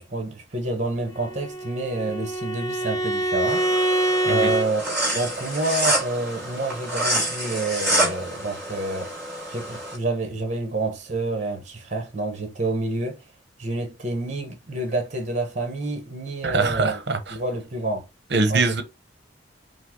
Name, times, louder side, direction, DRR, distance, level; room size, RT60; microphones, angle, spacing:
voice 1, 0.0-3.7 4.2-9.1 9.5-13.2 13.6-17.0 17.3-18.0 18.5-18.8, right 2 dB, 40° right, 1.1 m, -28 dB
Bowed string instrument, 1.2-4.7, right 1 dB, 20° left, 0.7 m, -25 dB
sound 1, 3.5-10.0, right 1 dB, 10° right, 2.6 m, -27 dB
voice 2, 16.4-17.4 18.3-18.8, right 3 dB, 60° right, 0.9 m, -23 dB
5.5 x 2.1 x 3.7 m
head